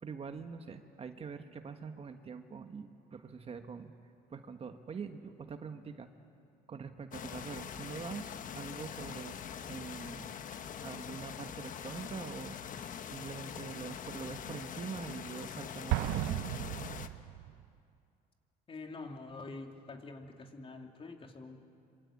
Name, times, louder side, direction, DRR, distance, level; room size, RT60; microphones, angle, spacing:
voice 1, 0.0-3.9 4.3-6.1 6.7-9.4 9.7-12.6 13.0-16.4, right 5 dB, 35° right, 7 dB, 1.5 m, -44 dB
sound 1, 7.1-17.1, left 8 dB, 50° left, 1.3 m, -43 dB
Explosion, 15.9-17.7, right 15 dB, 90° right, 0.6 m, -34 dB
voice 2, 18.7-21.6, left 3 dB, 35° left, 3 dB, 2.9 m, -46 dB
26.5 x 25.0 x 8.7 m, 2.5 s
cardioid pair, 110°, 17 cm